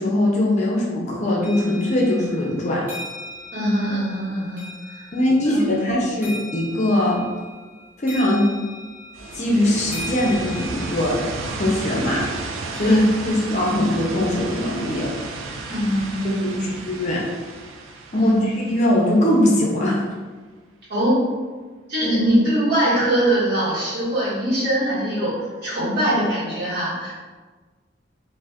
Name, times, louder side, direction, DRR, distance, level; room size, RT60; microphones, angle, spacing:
voice 1, 0.0-2.8 5.1-7.2 8.0-8.5 9.3-11.2 11.5-12.2 12.7-15.1 16.2-17.2 18.1-20.0 22.0-22.2, left 1 dB, 35° left, -2 dB, 0.5 m, -21 dB
sound 1, 1.4-11.1, left 1 dB, 10° right, 0.7 m, -39 dB
voice 2, 3.5-5.1 5.4-5.9 12.8-13.0 15.7-17.0 18.2-18.5 20.9-21.3 21.9-27.1, equal, 55° right, -10 dB, 1.5 m, -23 dB
sound 2, 9.1-19.9, right 3 dB, 85° right, 0.4 m, -33 dB
2.6 x 2.4 x 3.4 m, 1.4 s
head